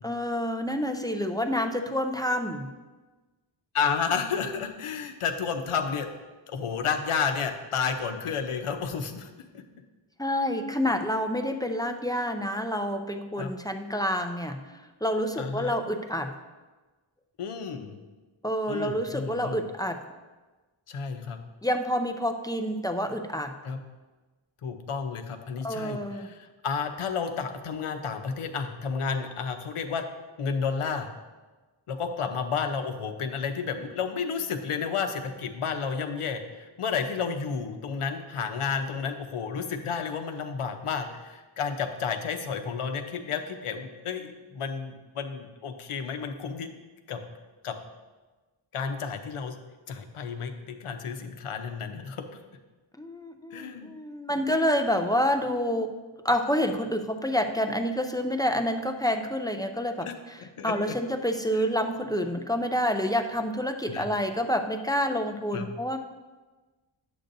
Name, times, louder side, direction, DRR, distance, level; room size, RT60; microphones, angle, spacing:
voice 1, 0.0-2.7 10.2-14.6 15.0-16.3 18.4-20.0 21.6-23.5 25.6-26.3 53.0-55.9 56.2-66.0, equal, 10° left, 6 dB, 0.4 m, -28 dB
voice 2, 3.7-6.1 6.5-9.6 13.4-13.5 15.4-15.7 17.4-18.0 18.7-19.6 20.9-21.4 23.6-23.8 24.6-30.1 30.4-31.1 31.9-46.7 47.1-47.2 47.6-47.8 48.7-49.6 49.9-52.3 53.5-53.9 60.0-61.0 61.6-61.9 63.9-64.1 65.5-65.7, left 6 dB, 85° left, 6 dB, 0.9 m, -31 dB
10.0 x 7.7 x 2.6 m, 1.2 s
wide cardioid pair, 130°, 49 cm